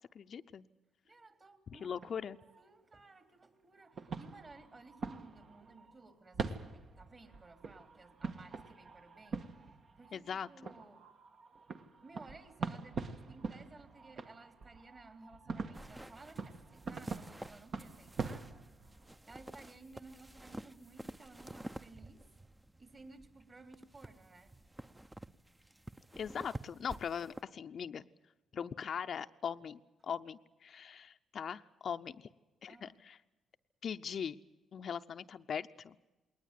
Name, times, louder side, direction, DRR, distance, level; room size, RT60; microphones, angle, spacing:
voice 1, 0.1-0.6 1.7-2.4 10.1-10.7 26.2-28.0 28.5-32.3 32.6-33.2 33.8-34.4 34.7-36.0, left 7 dB, 55° left, 9 dB, 0.7 m, -40 dB
voice 2, 1.0-2.3 2.6-9.7 10.0-11.1 12.0-18.5 19.3-22.2 22.8-24.5 32.7-33.0, right 3 dB, 35° right, 8 dB, 3.5 m, -57 dB
sound 1, 1.7-2.7 3.8-6.1 6.3-19.2, right 4 dB, 50° right, 1.6 m, -44 dB
sound 2, 15.7-27.4, right 1 dB, 10° right, 0.8 m, -50 dB
20.5 x 19.5 x 9.2 m, 1.1 s
cardioid pair, 90°, 0 cm